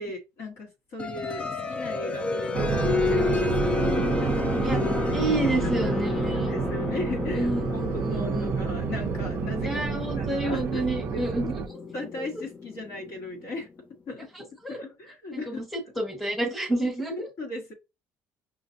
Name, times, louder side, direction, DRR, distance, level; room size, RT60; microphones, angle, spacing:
voice 1, 0.0-4.5 5.1-5.5 5.8-5.9 6.3-10.8 11.1-11.5 11.9-13.7 14.1-15.6 16.8-16.9 17.4-17.7, left 2 dB, 55° left, 1.5 m, -38 dB
sound 1, 1.0-13.5, left 4 dB, 20° left, 0.4 m, -30 dB
sound 2, 2.5-11.7, right 7 dB, 45° right, 0.4 m, -29 dB
voice 2, 5.1-6.5 7.3-8.5 9.6-11.6 14.6-14.8 15.3-15.6 15.9-17.3, right 2 dB, ahead, 1.5 m, -29 dB
5.7 x 2.5 x 2.6 m
cardioid pair, 150°, 6 cm